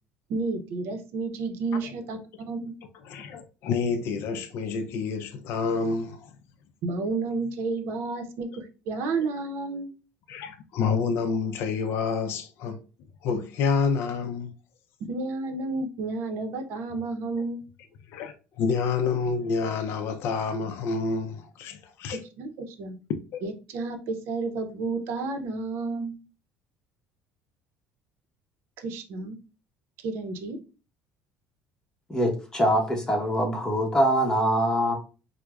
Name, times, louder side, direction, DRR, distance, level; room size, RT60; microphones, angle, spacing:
voice 1, 0.3-2.2 2.5-2.7 6.8-9.9 15.1-17.6 22.4-23.0 23.4-26.2 28.8-29.4 30.0-30.6, right 3 dB, 65° right, 0.6 m, -31 dB
voice 2, 3.1-6.3 9.0-9.1 10.3-12.8 13.2-14.5 18.1-22.2 23.3-23.4, left 5 dB, 65° left, 0.4 m, -28 dB
voice 3, 32.1-34.9, equal, 15° left, 0.9 m, -23 dB
4.5 x 2.0 x 2.3 m
cardioid pair, 115°, 4 cm